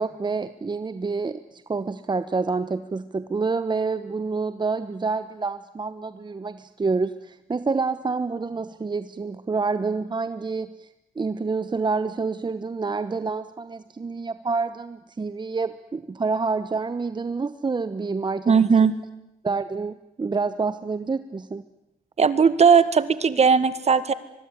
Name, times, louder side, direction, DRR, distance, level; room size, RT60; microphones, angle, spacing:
voice 1, 0.0-10.9 11.1-18.7 19.4-21.6, right 4 dB, 30° right, 12 dB, 1.1 m, -28 dB
voice 2, 18.5-18.9 22.2-24.1, right 6 dB, 50° right, 14 dB, 1.9 m, -18 dB
24.0 x 22.0 x 9.9 m, 0.89 s
cardioid pair, 70°, 14 cm